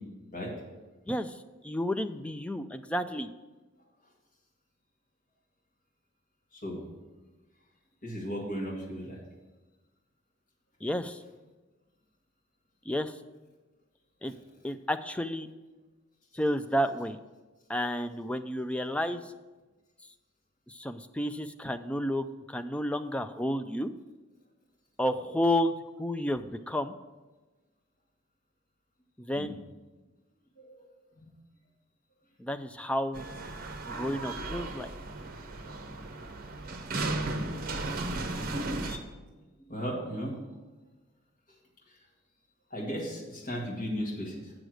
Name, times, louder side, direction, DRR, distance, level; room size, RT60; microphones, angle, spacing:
voice 1, 1.1-1.4 1.6-3.3 10.8-11.2 12.9-13.1 14.2-14.3 14.6-15.5 16.3-17.2 17.7-19.2 20.7-23.9 25.0-25.7 26.0-26.9 29.2-29.6 32.4-33.3 33.9-34.9, equal, 5° left, 9 dB, 0.3 m, -31 dB
voice 2, 6.5-6.8 8.0-9.2 14.2-14.4 29.3-29.5 30.6-30.7 31.2-31.3 39.6-40.3 42.7-44.5, equal, 45° left, -3 dB, 2.0 m, -36 dB
sound 1, 33.1-39.0, right 2 dB, 45° right, 0.8 m, -35 dB
7.9 x 6.1 x 6.3 m, 1.2 s
head